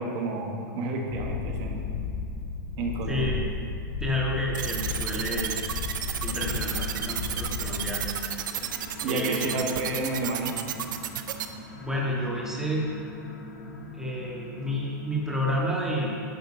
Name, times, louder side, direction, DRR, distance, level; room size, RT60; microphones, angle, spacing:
voice 1, 0.0-1.9 2.8-3.4 9.0-10.6, right 2 dB, 50° right, 1 dB, 1.4 m, -30 dB
Purr, 1.1-8.1, left 5 dB, 60° left, 0.8 m, -34 dB
voice 2, 3.1-3.4 4.0-5.5 6.2-8.1 9.1-9.7 11.7-12.9 13.9-16.2, equal, 5° right, -4 dB, 1.8 m, -30 dB
sound 1, 4.5-11.5, right 10 dB, 80° right, 0.6 m, -32 dB
sound 2, 8.3-15.8, left 2 dB, 85° left, 1.5 m, -43 dB
11.0 x 3.8 x 5.6 m, 2.4 s
hypercardioid pair, 120°, 10 cm